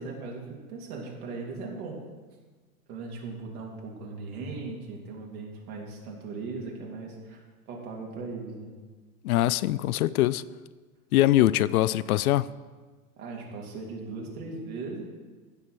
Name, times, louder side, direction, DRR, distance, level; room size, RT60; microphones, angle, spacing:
voice 1, 0.0-2.0 2.9-7.4 7.7-8.7 13.2-15.0, right 3 dB, 65° right, 2.9 m, -38 dB
voice 2, 9.2-10.4 11.1-12.5, left 14 dB, 65° left, 0.5 m, -23 dB
16.0 x 6.0 x 4.3 m
hypercardioid pair, 95°, 46 cm